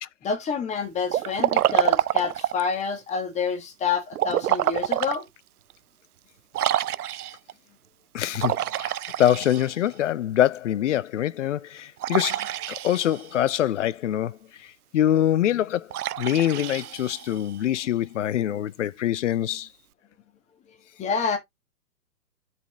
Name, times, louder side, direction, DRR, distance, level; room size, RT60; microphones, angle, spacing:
voice 1, 0.2-5.3 20.7-21.4, left 6 dB, 15° left, 1.5 m, -28 dB
Liquid, 1.1-2.7 4.1-5.2 5.7-5.8 6.5-7.5 8.3-10.0 12.0-13.4 15.9-17.5, right 12 dB, 70° right, 0.6 m, -26 dB
voice 2, 8.1-15.9 16.2-19.7, left 11 dB, 50° left, 0.6 m, -25 dB
10.5 x 4.3 x 2.8 m
hypercardioid pair, 125°, 47 cm